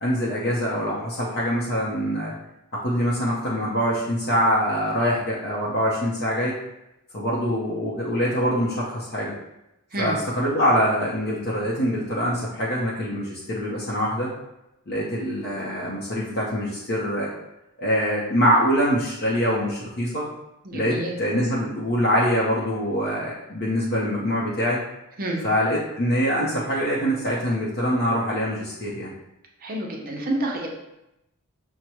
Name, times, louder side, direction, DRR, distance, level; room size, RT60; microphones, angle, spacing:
voice 1, 0.0-2.3 2.7-6.6 7.1-9.3 10.0-14.3 14.9-17.3 17.8-20.3 20.7-24.8 25.4-29.1, equal, 50° left, -6 dB, 0.7 m, -24 dB
voice 2, 20.6-21.1 25.2-25.5 29.6-30.7, right 1 dB, 40° right, -1 dB, 0.7 m, -28 dB
6.1 x 2.2 x 2.9 m, 0.90 s
head